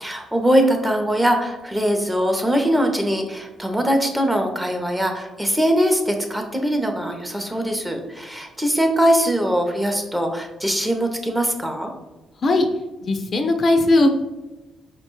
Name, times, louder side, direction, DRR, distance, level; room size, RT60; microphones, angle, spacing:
voice 1, 0.0-11.9, equal, 10° right, 4 dB, 0.6 m, -21 dB
voice 2, 13.0-14.1, left 2 dB, 45° left, 5 dB, 0.3 m, -17 dB
4.6 x 2.2 x 2.9 m, 1.0 s
cardioid pair, 90°, 0 cm